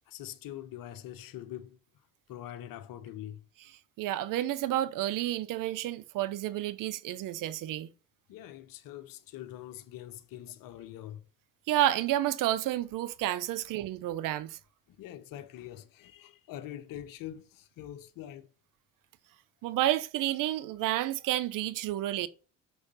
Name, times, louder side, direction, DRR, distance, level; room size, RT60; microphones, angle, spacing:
voice 1, 0.1-1.8 2.3-3.7 8.3-11.2 14.9-18.5, left 12 dB, 50° left, 1.1 m, -44 dB
voice 2, 4.0-7.9 11.7-14.6 19.6-22.3, right 13 dB, 50° right, 0.8 m, -30 dB
6.5 x 6.4 x 5.5 m
figure-of-eight pair, 55°, 41 cm